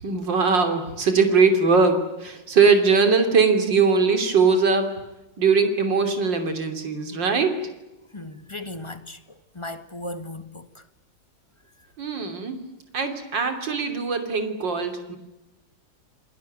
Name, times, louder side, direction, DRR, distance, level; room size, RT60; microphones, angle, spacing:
voice 1, 0.0-4.9 5.4-7.5 12.0-12.6 12.9-15.2, right 4 dB, 70° right, 3.8 m, -21 dB
voice 2, 8.1-10.8, left 1 dB, 15° left, 1.5 m, -37 dB
28.5 x 20.5 x 9.4 m
omnidirectional pair, 2.0 m